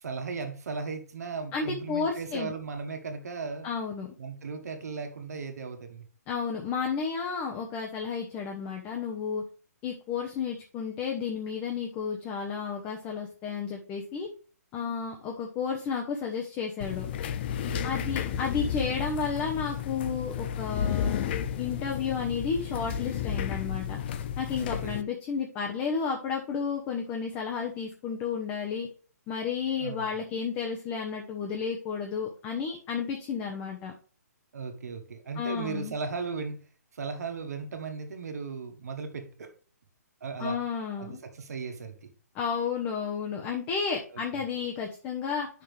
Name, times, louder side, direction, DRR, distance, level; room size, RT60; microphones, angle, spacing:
voice 1, 0.0-3.7 4.2-6.0 17.6-18.2 24.5-25.0 29.8-30.1 34.5-36.6 36.9-39.5 40.2-40.6 41.0-42.1 44.1-44.2, right 4 dB, 70° right, 5 dB, 1.6 m, -37 dB
voice 2, 1.5-2.5 3.6-4.1 6.3-9.4 9.8-14.3 14.7-17.1 17.8-21.3 21.6-24.0 24.4-28.9 29.3-33.9 35.4-36.0 40.4-41.2 42.3-45.5, left 6 dB, 25° left, 2 dB, 1.0 m, -32 dB
sound 1, 16.8-25.0, left 8 dB, 40° left, 0.5 m, -32 dB
9.1 x 5.9 x 3.4 m, 0.40 s
hypercardioid pair, 145°, 9 cm